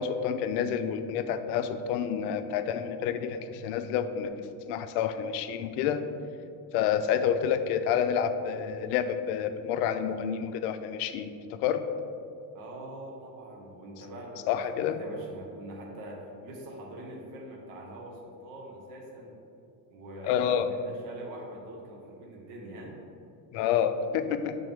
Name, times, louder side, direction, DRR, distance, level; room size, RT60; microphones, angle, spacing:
voice 1, 0.0-6.0 6.7-11.8 14.5-15.0 20.2-20.7 23.5-24.6, left 8 dB, 85° left, 9 dB, 0.6 m, -29 dB
voice 2, 12.5-19.4 19.9-23.0, right 1 dB, 45° right, -1 dB, 0.8 m, -43 dB
7.5 x 3.7 x 3.5 m, 2.6 s
cardioid pair, 170°, 45 cm